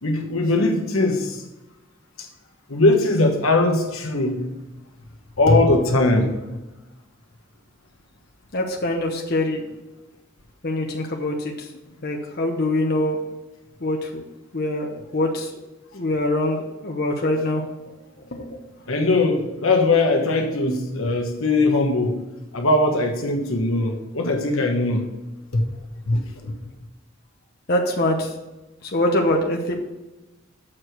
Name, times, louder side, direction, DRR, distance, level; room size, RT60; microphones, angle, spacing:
voice 1, 0.0-1.4 2.7-4.4 5.4-6.3 18.9-22.2 22.5-25.1 25.5-25.6 26.1-26.5, left 2 dB, 80° left, 1.2 m, -20 dB
voice 2, 8.5-9.7 10.6-11.7 12.0-13.2 13.8-14.2 14.5-15.5 15.9-17.9 18.3-18.6 27.7-28.3 28.8-29.7, left 1 dB, 50° left, 0.9 m, -24 dB
7.4 x 4.7 x 6.5 m
head